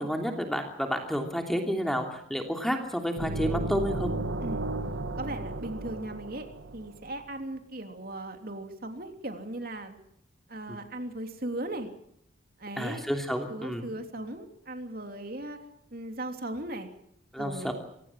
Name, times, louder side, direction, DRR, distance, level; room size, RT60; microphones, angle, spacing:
voice 1, 0.0-4.1 10.7-10.8 12.8-13.9 17.3-17.7, equal, ahead, 4 dB, 3.0 m, -30 dB
sound 1, 3.2-7.0, right 2 dB, 70° right, 1.6 m, -33 dB
voice 2, 5.1-6.5 6.7-10.0 10.5-11.9 12.6-13.0 13.5-15.6 15.9-16.9 17.4-17.7, right 1 dB, 50° right, 6 dB, 3.1 m, -37 dB
26.0 x 18.0 x 7.6 m, 0.73 s
head